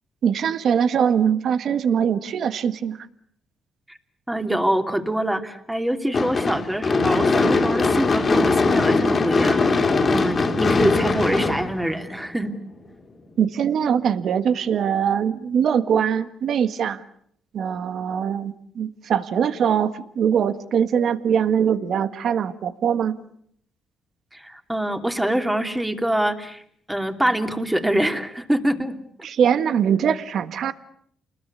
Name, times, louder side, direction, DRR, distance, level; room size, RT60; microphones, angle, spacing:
voice 1, 0.2-3.1 13.4-17.0 17.5-23.1 29.2-30.7, right 8 dB, 65° right, 12 dB, 1.6 m, -22 dB
voice 2, 4.3-12.5 24.3-26.6 26.9-29.0, right 1 dB, 5° right, 5 dB, 2.8 m, -25 dB
Gunshot gunfire / Fireworks, 6.1-12.4, left 3 dB, 35° left, 2.9 m, -20 dB
29.0 x 20.5 x 8.5 m, 0.66 s
cardioid pair, 90°, 0 cm